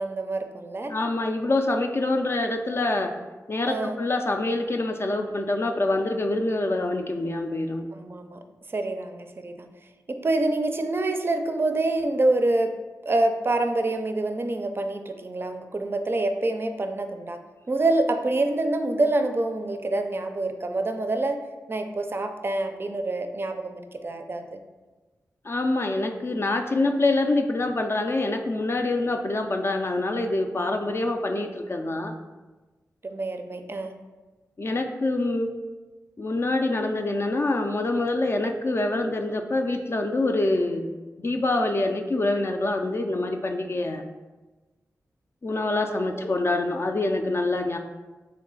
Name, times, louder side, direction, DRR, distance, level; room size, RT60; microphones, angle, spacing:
voice 1, 0.0-1.0 3.7-4.0 7.9-8.4 8.7-9.7 10.1-12.7 13.0-21.4 21.7-24.6 33.0-33.9 45.9-46.2, right 2 dB, 35° right, 6 dB, 0.4 m, -26 dB
voice 2, 0.9-3.1 3.5-7.9 25.4-32.2 34.6-35.5 36.2-40.9 41.2-44.0 45.4-47.8, left 2 dB, 40° left, 5 dB, 0.4 m, -25 dB
3.3 x 3.1 x 3.8 m, 1.2 s
cardioid pair, 55°, 6 cm